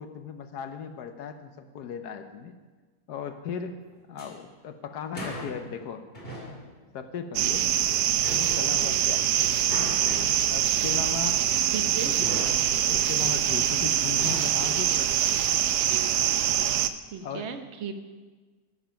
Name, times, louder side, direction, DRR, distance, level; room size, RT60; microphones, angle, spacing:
voice 1, 0.0-2.6 3.1-3.8 4.1-6.0 6.9-7.7 8.3-9.6 10.5-11.4 11.9-12.4 12.9-15.7 17.2-17.5, left 6 dB, 70° left, 8 dB, 1.3 m, -37 dB
sound 1, 3.9-4.3 5.1-5.8 6.1-6.7 8.2-9.1 9.7-10.6 12.2-12.8 14.2-14.4, left 1 dB, 35° left, 2.6 m, -38 dB
sound 2, 7.3-16.9, right 11 dB, 75° right, 1.1 m, -24 dB
voice 2, 11.7-12.1 17.1-17.9, right 6 dB, 50° right, 6 dB, 1.0 m, -35 dB
14.5 x 7.1 x 5.8 m, 1.3 s
omnidirectional pair, 1.8 m